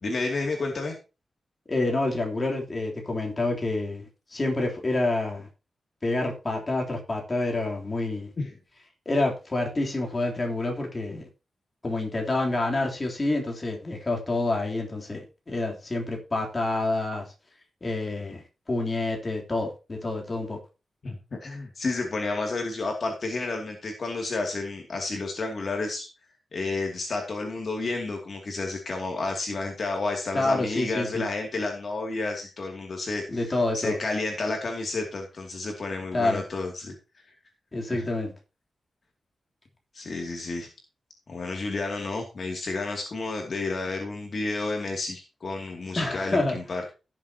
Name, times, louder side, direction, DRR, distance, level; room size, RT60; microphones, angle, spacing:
voice 1, 0.0-0.9 8.4-8.5 21.0-26.1 26.5-36.9 37.9-38.1 39.9-40.7 41.3-46.9, left 3 dB, 50° left, 2.5 m, -31 dB
voice 2, 1.7-5.5 6.0-8.3 9.0-11.2 11.8-17.2 17.8-20.6 30.3-31.2 33.3-34.0 36.1-36.4 37.7-38.3 45.9-46.6, left 2 dB, 30° left, 3.4 m, -28 dB
16.5 x 7.5 x 2.9 m
wide cardioid pair, 125°, 0 cm